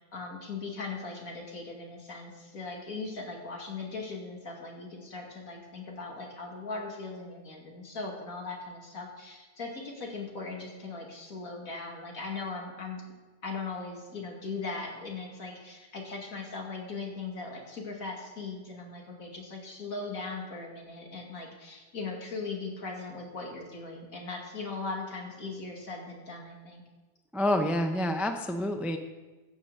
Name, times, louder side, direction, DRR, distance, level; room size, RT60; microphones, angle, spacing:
voice 1, 0.0-13.0 13.4-26.8, left 3 dB, 55° left, 0 dB, 2.8 m, -39 dB
voice 2, 27.3-29.0, left 1 dB, ahead, 5 dB, 0.3 m, -28 dB
15.5 x 7.0 x 6.7 m, 1.2 s
omnidirectional pair, 1.8 m